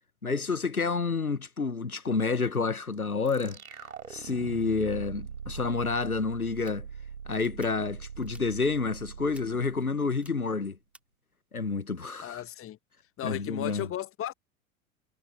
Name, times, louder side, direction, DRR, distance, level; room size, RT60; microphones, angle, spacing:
voice 1, 0.2-3.6 4.1-6.9 7.3-10.8 11.5-12.4 13.2-13.9, left 4 dB, 90° left, 1.2 m, -29 dB
sound 1, 3.2-10.5, right 7 dB, 80° right, 3.3 m, -42 dB
sound 2, 6.4-6.7 7.3-7.7 8.2-8.4 9.3-9.4 10.1-10.3 10.9-11.0, right 1 dB, 5° right, 4.1 m, -54 dB
voice 2, 12.2-12.8 13.2-14.3, left 12 dB, 30° left, 1.6 m, -35 dB
figure-of-eight pair, 75°, 42 cm